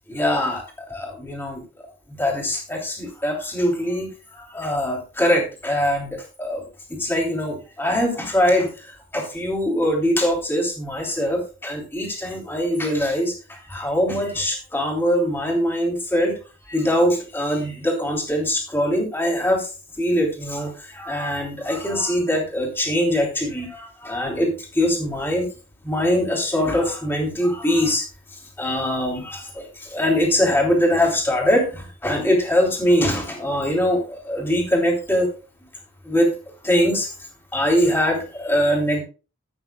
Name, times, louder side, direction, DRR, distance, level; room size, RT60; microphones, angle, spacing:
voice 1, 0.1-1.6 2.2-6.6 6.9-16.3 16.6-19.7 20.0-25.5 25.8-28.0 28.3-35.3 36.0-36.3 36.6-37.1 37.5-39.0, equal, 10° left, -1 dB, 3.2 m, -22 dB
15.5 x 8.8 x 2.3 m, 0.33 s
head